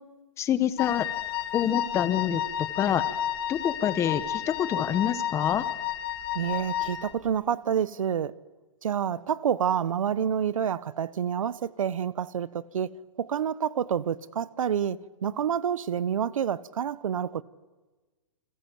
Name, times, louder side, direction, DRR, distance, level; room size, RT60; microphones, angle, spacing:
voice 1, 0.4-1.1 1.5-3.0 3.5-5.7, left 9 dB, 15° left, 1.2 m, -26 dB
Wind instrument woodwind instrument, 0.8-7.1, left 11 dB, 45° left, 2.6 m, -31 dB
voice 2, 6.3-8.3 8.8-17.4, right 8 dB, 80° right, 1.1 m, -28 dB
29.5 x 26.0 x 7.8 m
hypercardioid pair, 155°, 17 cm